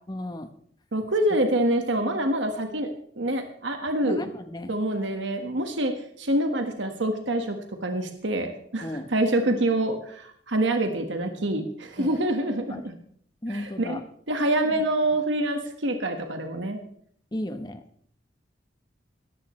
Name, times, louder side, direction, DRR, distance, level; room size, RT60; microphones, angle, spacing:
voice 1, 0.1-0.5 4.0-4.7 8.8-9.1 9.5-9.6 12.0-12.2 12.7-12.9 13.4-14.0 14.6-14.8 17.3-17.8, left 1 dB, 20° left, 8 dB, 1.0 m, -34 dB
voice 2, 0.9-2.9 3.2-4.2 4.7-5.9 6.2-7.6 7.8-12.9 13.5-14.0 14.3-16.8, right 1 dB, 80° right, 5 dB, 1.6 m, -26 dB
17.5 x 14.0 x 3.2 m, 0.63 s
head